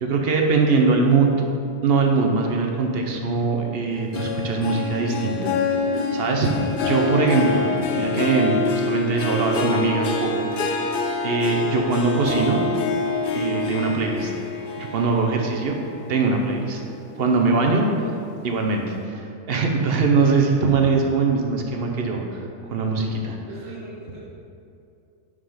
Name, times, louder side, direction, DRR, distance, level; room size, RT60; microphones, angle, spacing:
voice 1, 0.0-1.3 1.8-5.5 6.1-10.9 11.2-12.6 13.3-14.3 14.8-15.7 16.1-16.8 17.2-17.9 18.4-22.2 22.7-23.4, right 4 dB, 55° right, 2 dB, 0.8 m, -22 dB
Harp, 4.1-16.9 17.3-17.7 18.2-18.3, left 3 dB, 65° left, 0.5 m, -26 dB
voice 2, 23.5-24.2, right 2 dB, 20° right, -14 dB, 1.8 m, -41 dB
5.8 x 5.0 x 5.0 m, 2.5 s
omnidirectional pair, 1.4 m